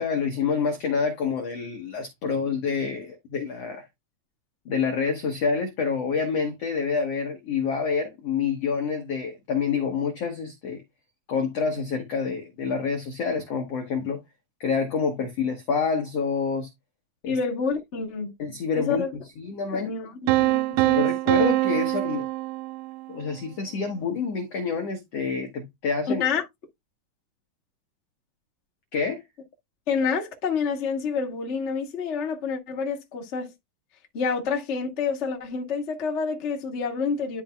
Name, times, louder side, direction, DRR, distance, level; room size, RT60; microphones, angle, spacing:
voice 1, 0.0-3.8 4.6-10.8 11.3-14.2 14.6-16.7 17.2-17.4 18.4-19.1 19.4-19.9 21.0-22.3 23.1-26.2 28.9-29.2, left 5 dB, 75° left, 1.4 m, -27 dB
voice 2, 17.3-18.3 18.7-19.1 19.7-21.0 26.2-26.4 29.9-33.5 34.1-37.4, left 5 dB, 50° left, 0.8 m, -28 dB
sound 1, 20.3-23.2, right 19 dB, 80° right, 2.5 m, -23 dB
12.5 x 4.8 x 2.3 m
omnidirectional pair, 4.7 m